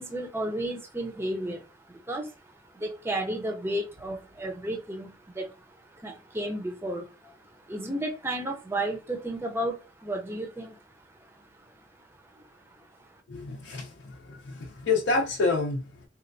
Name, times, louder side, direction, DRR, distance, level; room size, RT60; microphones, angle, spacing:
voice 1, 0.0-10.8 11.2-13.2, right 1 dB, 15° right, 0.5 m, -34 dB
voice 2, 13.3-15.9, left 3 dB, 80° left, 0.6 m, -28 dB
4.2 x 2.2 x 2.6 m
head